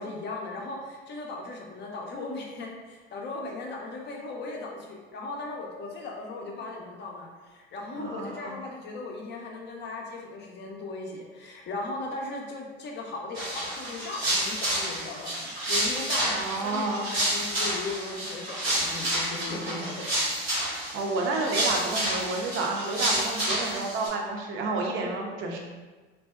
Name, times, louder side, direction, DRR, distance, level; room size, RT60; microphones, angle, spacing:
voice 1, 0.0-20.1, left 3 dB, 35° left, 0 dB, 0.5 m, -37 dB
voice 2, 8.0-8.6 16.3-17.1 19.5-19.9 20.5-20.6 20.9-25.6, right 3 dB, 40° right, 1 dB, 0.5 m, -30 dB
sound 1, 13.3-24.1, right 1 dB, 90° right, 1.0 m, -29 dB
2.6 x 2.1 x 2.2 m, 1.3 s
hypercardioid pair, 75°, 31 cm